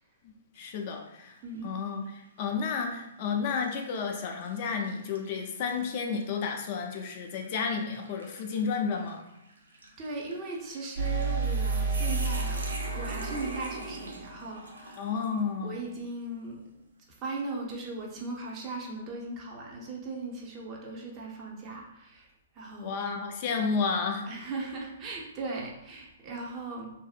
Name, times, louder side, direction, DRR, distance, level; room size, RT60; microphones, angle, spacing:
voice 1, 0.6-1.4 1.6-9.2 15.0-15.8 22.8-24.3, left 5 dB, 45° left, 3 dB, 0.3 m, -31 dB
sound 1, 0.6-1.0 1.6-1.7 2.6-2.9 3.5-15.5, right 2 dB, 90° right, 0.4 m, -44 dB
voice 2, 1.4-1.7 10.0-12.6 12.9-15.0 15.6-16.6 17.2-22.9 24.3-26.9, right 2 dB, 30° right, -1 dB, 0.6 m, -38 dB
sound 2, 11.0-14.7, right 4 dB, 65° right, 1.2 m, -31 dB
2.6 x 2.0 x 2.4 m, 0.86 s
hypercardioid pair, 130°, 0 cm